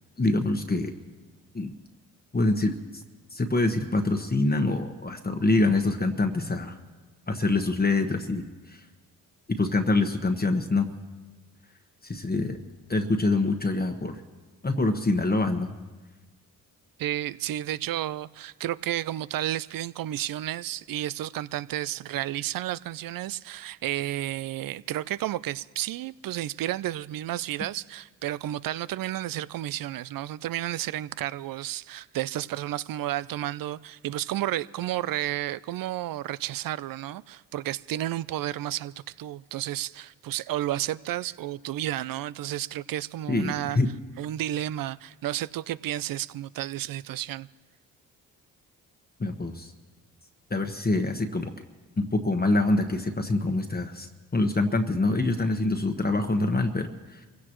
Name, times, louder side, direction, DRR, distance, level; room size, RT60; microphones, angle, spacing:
voice 1, 0.2-0.9 1.5-1.8 2.3-3.0 3.3-6.8 7.3-8.8 9.6-10.9 12.0-12.6 12.9-14.2 14.6-15.7 43.3-43.9 49.2-49.7 50.5-51.5 52.0-57.3, left 2 dB, 25° left, 1.2 m, -25 dB
voice 2, 17.0-43.8 44.2-47.5, right 13 dB, 60° right, 0.5 m, -32 dB
25.5 x 16.5 x 3.1 m
supercardioid pair, 50°, 38 cm